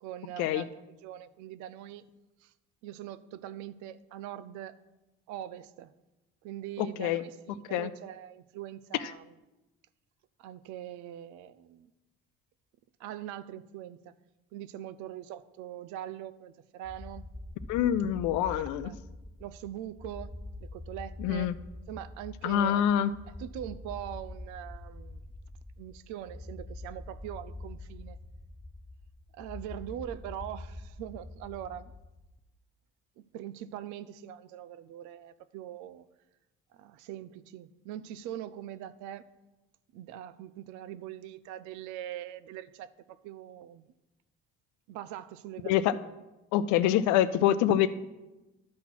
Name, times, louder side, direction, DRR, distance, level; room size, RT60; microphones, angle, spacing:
voice 1, 0.0-2.0 2.4-2.5 2.8-4.7 5.3-5.9 6.4-9.3 10.4-11.9 13.0-14.1 14.5-17.3 18.5-18.9 19.4-20.3 20.6-21.5 21.9-22.9 23.4-25.2 25.8-28.2 29.3-31.9 33.2-36.0 36.8-39.2 39.9-42.9 43.2-43.9 44.9-46.1, right 11 dB, 80° right, 0.5 m, -42 dB
voice 2, 6.8-7.2 7.7-7.9 17.7-18.9 21.2-21.5 22.4-23.1 45.7-46.0 46.5-47.9, left 11 dB, 80° left, 0.5 m, -25 dB
sound 1, 16.8-32.4, left 2 dB, 5° left, 0.4 m, -45 dB
11.5 x 4.2 x 5.9 m
supercardioid pair, 65°, 29 cm